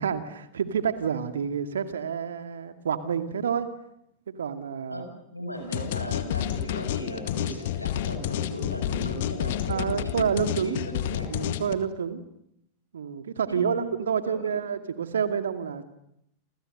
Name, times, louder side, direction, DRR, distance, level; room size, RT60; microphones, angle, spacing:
voice 1, 0.0-3.7 4.3-5.1 9.7-10.8 11.3-12.2 12.9-15.8, right 7 dB, 65° right, 10 dB, 2.3 m, -28 dB
voice 2, 4.9-11.3 13.5-14.7, equal, 90° left, 5 dB, 7.2 m, -37 dB
sound 1, 5.7-11.7, left 11 dB, 55° left, 2.0 m, -30 dB
29.5 x 28.0 x 6.7 m, 0.78 s
figure-of-eight pair, 90°, 0 cm